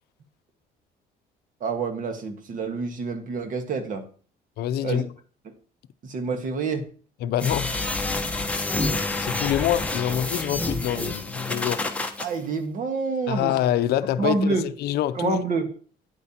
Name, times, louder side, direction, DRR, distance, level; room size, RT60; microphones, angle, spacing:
voice 1, 1.6-4.0 4.8-5.0 6.0-6.9 12.2-13.5 14.2-14.6 15.1-15.7, right 4 dB, 50° right, 1.5 m, -27 dB
voice 2, 4.6-5.1 7.2-7.7 9.2-11.8 13.3-15.4, left 11 dB, 70° left, 0.5 m, -25 dB
sound 1, 7.4-12.3, left 2 dB, 10° left, 1.0 m, -28 dB
9.6 x 8.2 x 2.9 m
cardioid pair, 110°, 17 cm